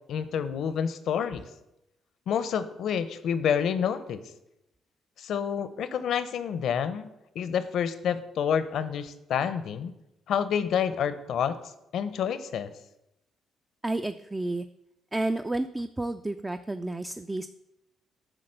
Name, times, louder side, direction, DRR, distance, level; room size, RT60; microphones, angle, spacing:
voice 1, 0.1-1.5 2.3-4.2 5.2-7.1 7.3-9.9 10.3-11.6 11.9-12.7, left 8 dB, 70° left, 13 dB, 0.7 m, -28 dB
voice 2, 13.8-14.7 15.1-17.5, right 2 dB, 15° right, 9 dB, 0.4 m, -31 dB
9.9 x 3.8 x 6.5 m, 0.89 s
cardioid pair, 90°, 0 cm